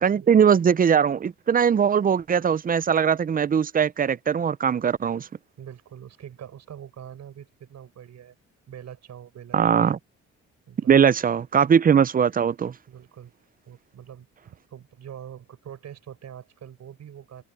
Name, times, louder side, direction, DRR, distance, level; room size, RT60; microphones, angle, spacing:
voice 1, 0.0-5.3 9.5-10.0 10.9-12.7, right 7 dB, 30° right, 0.5 m, -20 dB
voice 2, 5.6-8.4 8.7-9.9 10.7-10.9 12.9-13.3 13.7-17.4, right 9 dB, 60° right, 5.3 m, -43 dB
cardioid pair, 90°, 30 cm